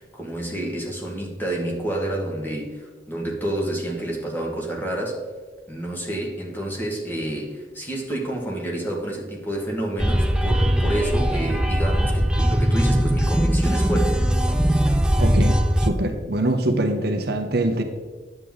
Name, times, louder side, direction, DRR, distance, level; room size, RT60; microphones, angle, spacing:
voice 1, 0.0-5.2 5.7-14.4, right 1 dB, 10° left, -2 dB, 1.6 m, -29 dB
sound 1, 10.0-15.9, equal, 5° right, 0.5 m, -20 dB
voice 2, 15.2-17.8, right 1 dB, 60° right, 6 dB, 0.8 m, -23 dB
9.8 x 7.4 x 3.8 m, 1.4 s
head